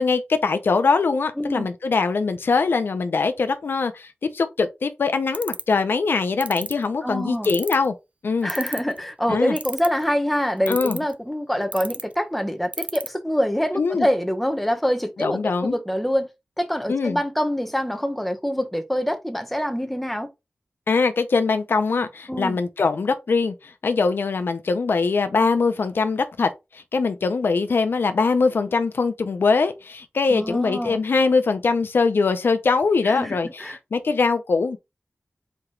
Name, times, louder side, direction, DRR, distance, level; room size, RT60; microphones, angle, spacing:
voice 1, 0.0-7.9 8.2-8.5 9.3-9.5 10.7-11.0 13.8-14.1 15.2-15.7 16.9-17.2 20.9-34.8, left 4 dB, 90° left, 0.5 m, -22 dB
voice 2, 1.4-1.7 7.0-7.5 8.4-16.3 16.6-20.3 22.3-22.6 30.3-31.0 33.0-33.8, equal, 5° left, 0.8 m, -25 dB
sound 1, 5.3-5.7 6.4-6.7 7.4-7.9 8.5-9.0 9.6-10.0 10.7-11.1 11.7-12.0 12.7-13.1, right 3 dB, 40° right, 0.4 m, -30 dB
4.5 x 2.9 x 3.6 m
wide cardioid pair, 90°, 4 cm